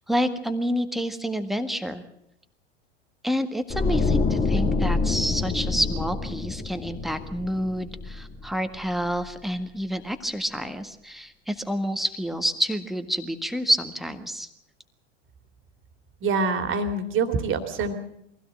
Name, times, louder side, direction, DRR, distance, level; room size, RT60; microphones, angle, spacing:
voice 1, 0.0-2.0 3.2-14.5, equal, ahead, 8 dB, 1.6 m, -28 dB
sound 1, 3.7-8.8 9.1-9.3, left 3 dB, 20° left, 2.0 m, -26 dB
voice 2, 16.2-17.9, right 4 dB, 35° right, 8 dB, 2.7 m, -25 dB
23.0 x 16.5 x 7.6 m, 0.76 s
figure-of-eight pair, 90°, 36 cm